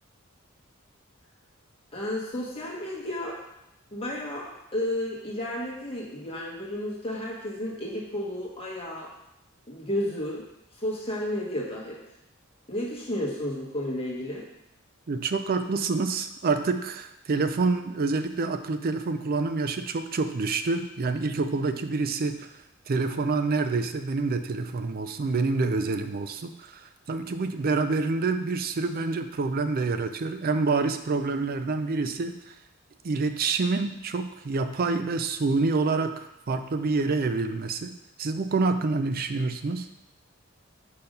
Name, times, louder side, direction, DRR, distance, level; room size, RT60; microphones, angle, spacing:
voice 1, 1.9-3.4 3.9-9.1 9.7-10.4 10.8-12.0 12.7-14.4, left 1 dB, 30° left, -3 dB, 1.3 m, -32 dB
voice 2, 15.1-22.5 22.9-32.5 33.0-37.9 38.2-39.9, right 3 dB, 45° right, 9 dB, 0.4 m, -27 dB
5.1 x 4.4 x 5.3 m, 0.85 s
head